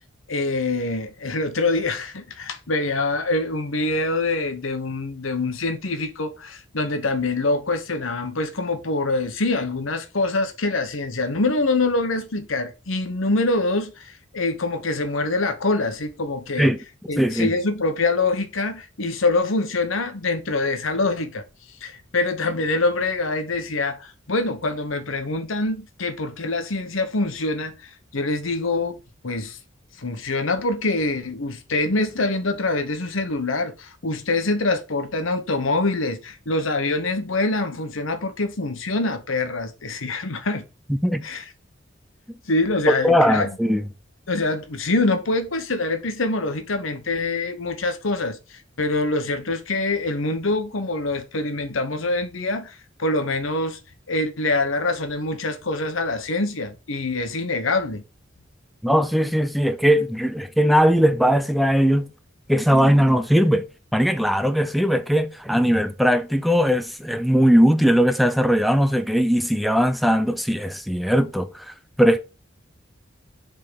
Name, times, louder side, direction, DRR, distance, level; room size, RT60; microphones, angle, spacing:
voice 1, 0.3-16.7 17.1-21.4 21.8-29.0 29.2-29.6 30.0-40.6 41.2-41.4 42.4-43.5 44.3-53.8 54.1-58.0, left 2 dB, 85° left, 1.1 m, -25 dB
voice 2, 17.2-17.5 41.0-41.3 43.0-43.8 58.8-62.1 62.5-63.6 63.9-72.2, equal, ahead, 0.4 m, -19 dB
6.9 x 3.8 x 5.1 m
head